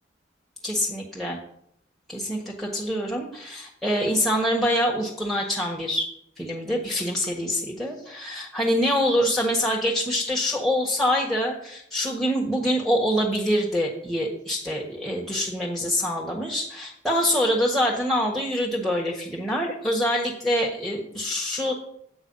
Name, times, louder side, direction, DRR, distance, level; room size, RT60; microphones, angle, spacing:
voice 1, 0.6-1.4 2.1-6.1 6.4-21.7, equal, ahead, -1 dB, 1.4 m, -25 dB
10.0 x 8.3 x 5.5 m, 0.72 s
head